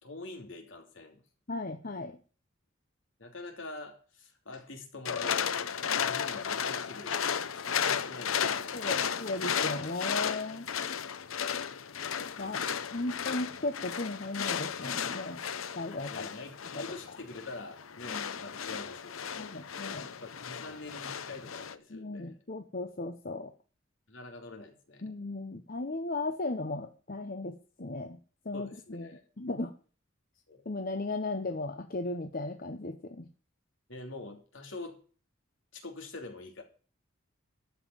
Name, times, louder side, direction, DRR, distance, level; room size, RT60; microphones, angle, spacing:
voice 1, 0.0-1.2 3.2-5.4 5.9-9.1 12.2-12.7 16.1-19.4 20.1-22.4 24.1-25.0 28.5-29.2 30.5-30.6 33.9-35.0 35.7-36.6, left 2 dB, 65° left, 4 dB, 2.9 m, -45 dB
voice 2, 1.5-2.2 8.7-10.7 12.4-12.6 12.9-15.4 15.7-16.3 16.7-16.8 18.1-18.3 19.4-20.1 21.9-23.5 25.0-28.2 28.4-29.1 29.4-29.7 30.7-33.2, left 2 dB, 45° left, 6 dB, 0.9 m, -36 dB
sound 1, 5.1-21.7, left 7 dB, 85° left, 0.8 m, -34 dB
13.5 x 5.8 x 9.3 m, 0.39 s
head